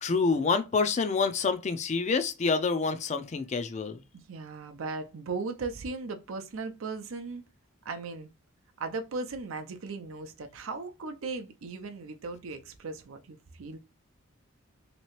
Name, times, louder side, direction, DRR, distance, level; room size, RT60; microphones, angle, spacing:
voice 1, 0.0-4.0, left 4 dB, 35° left, 0.4 m, -27 dB
voice 2, 4.3-7.4 7.8-8.3 8.8-13.8, right 3 dB, 85° right, 0.6 m, -37 dB
3.2 x 2.9 x 3.0 m
head